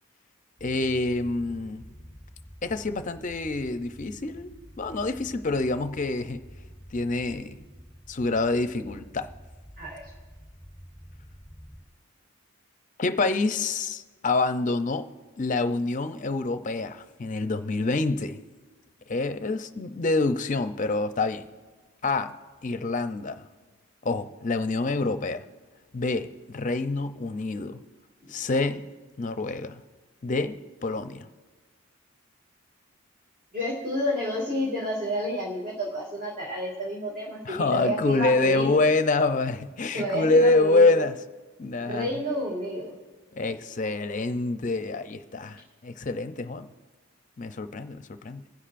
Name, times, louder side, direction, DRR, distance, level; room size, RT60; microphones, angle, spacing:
voice 1, 0.6-1.8 2.6-4.5 4.8-6.4 6.9-7.6 8.1-9.3 13.0-15.1 15.4-18.4 19.1-21.4 22.0-22.3 22.6-23.5 24.0-25.4 25.9-27.8 28.3-28.8 29.2-29.8 30.2-31.3 37.4-41.2 41.6-42.1 43.3-46.7 47.4-48.4, left 3 dB, 40° left, 0.5 m, -26 dB
sound 1, 0.6-11.8, equal, 15° right, 2.6 m, -48 dB
voice 2, 33.5-38.8 39.9-40.9 41.9-42.9, equal, 45° right, 2.1 m, -30 dB
26.5 x 10.0 x 2.5 m
head